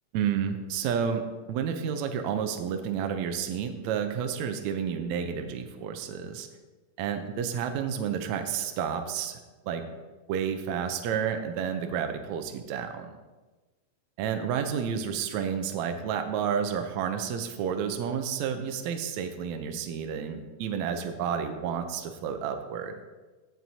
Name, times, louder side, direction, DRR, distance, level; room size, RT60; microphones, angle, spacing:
voice 1, 0.1-6.5 7.0-9.4 9.6-9.8 10.3-13.1 14.2-23.0, right 7 dB, 75° right, 6 dB, 1.7 m, -30 dB
15.0 x 6.0 x 2.8 m, 1.2 s
omnidirectional pair, 3.8 m